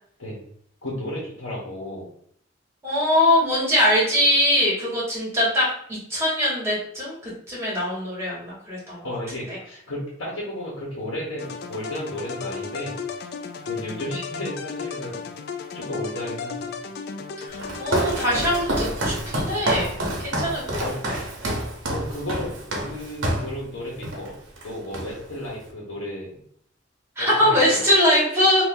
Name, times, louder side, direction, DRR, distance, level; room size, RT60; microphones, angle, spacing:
voice 1, 0.8-2.1 9.0-13.0 13.6-15.2 15.7-16.7 20.8-21.0 21.9-24.3 24.6-26.4 27.2-27.9, left 1 dB, 90° left, -5 dB, 1.0 m, -33 dB
voice 2, 2.8-7.2 7.5-9.1 9.5-9.6 17.4-19.9 20.2-20.9 27.2-28.6, left 1 dB, 15° right, -7 dB, 1.4 m, -22 dB
sound 1, 11.4-19.1, left 5 dB, 50° left, 0.3 m, -35 dB
Walk footsteps, 17.6-23.6 24.0-24.3 24.6-25.4, right 1 dB, 70° right, 0.8 m, -27 dB
2.7 x 2.6 x 3.6 m, 0.66 s
head